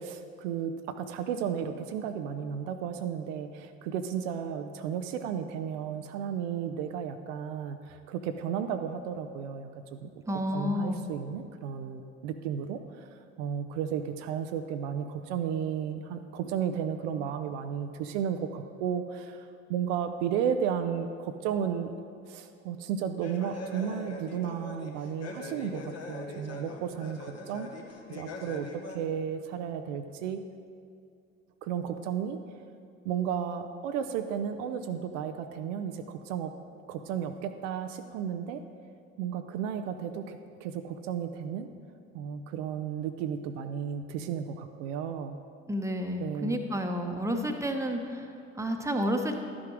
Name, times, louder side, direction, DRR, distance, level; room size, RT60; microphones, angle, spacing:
voice 1, 0.0-10.1 10.5-21.9 22.3-27.7 28.1-30.4 31.6-32.4 33.0-36.5 36.9-38.6 39.2-41.7 42.1-45.4 46.2-46.6, right 8 dB, 65° right, 7 dB, 0.6 m, -33 dB
voice 2, 10.2-11.0 45.7-49.4, equal, 5° right, 4 dB, 1.0 m, -30 dB
sound 1, 23.2-29.0, left 2 dB, 40° left, 1.2 m, -42 dB
12.0 x 6.1 x 4.7 m, 2.4 s
figure-of-eight pair, 55°, 40 cm